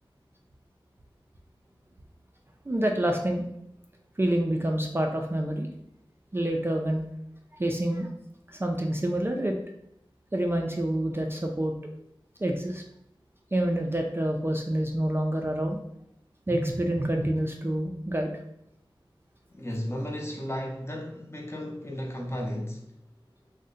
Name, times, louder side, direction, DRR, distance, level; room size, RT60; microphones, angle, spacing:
voice 1, 2.7-3.5 4.2-5.7 6.3-7.0 7.6-8.1 8.5-9.6 10.3-11.7 12.4-12.8 13.5-15.8 16.5-18.3, right 1 dB, 25° right, 2 dB, 0.3 m, -27 dB
voice 2, 19.5-22.9, equal, 30° left, 0 dB, 0.6 m, -34 dB
2.6 x 2.1 x 3.6 m, 0.76 s
wide cardioid pair, 50°, 9 cm